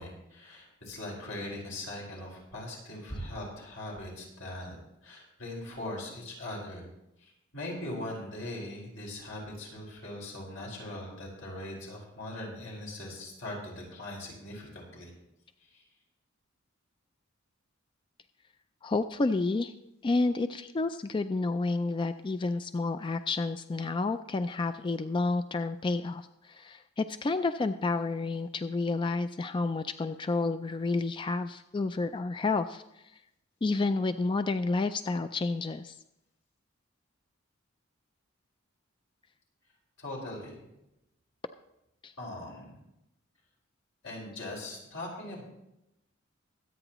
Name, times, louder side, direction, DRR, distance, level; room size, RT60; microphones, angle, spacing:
voice 1, 0.0-6.9 7.2-15.1 15.6-15.8 40.0-40.6 42.2-42.7 44.0-45.5, left 1 dB, 80° left, -2 dB, 5.0 m, -40 dB
voice 2, 18.8-19.7 20.0-33.2 33.6-36.0 42.0-42.1, left 3 dB, 25° left, 10 dB, 0.3 m, -30 dB
24.0 x 8.8 x 3.0 m, 0.87 s
head